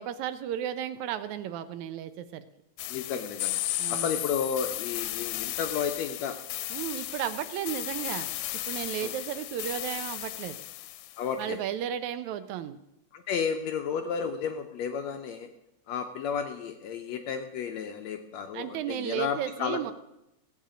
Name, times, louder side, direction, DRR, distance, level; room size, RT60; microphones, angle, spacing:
voice 1, 0.0-2.5 3.8-4.2 6.7-8.3 8.7-10.6 11.4-12.8 18.5-19.9, right 10 dB, 75° right, 11 dB, 1.9 m, -34 dB
sound 1, 2.8-11.2, left 15 dB, 90° left, 2.1 m, -35 dB
voice 2, 2.9-3.6 3.9-6.4 9.0-9.1 11.2-11.6 13.1-15.5 15.9-19.8, left 7 dB, 75° left, 6 dB, 1.8 m, -32 dB
17.0 x 8.4 x 5.0 m, 0.88 s
omnidirectional pair, 3.5 m